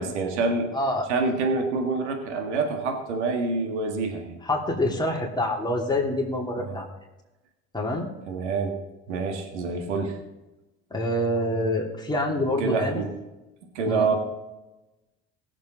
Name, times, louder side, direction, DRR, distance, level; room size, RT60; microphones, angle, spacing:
voice 1, 0.0-0.7 1.1-4.4 6.6-6.8 8.3-8.8 9.1-10.2 12.6-13.1 13.7-14.2, right 4 dB, 90° right, 3 dB, 1.9 m, -26 dB
voice 2, 0.7-1.1 4.4-6.9 7.7-8.1 10.9-13.0 13.9-14.2, left 1 dB, 15° left, -1 dB, 3.0 m, -26 dB
18.0 x 7.5 x 3.9 m, 1.0 s
supercardioid pair, 90°, 34 cm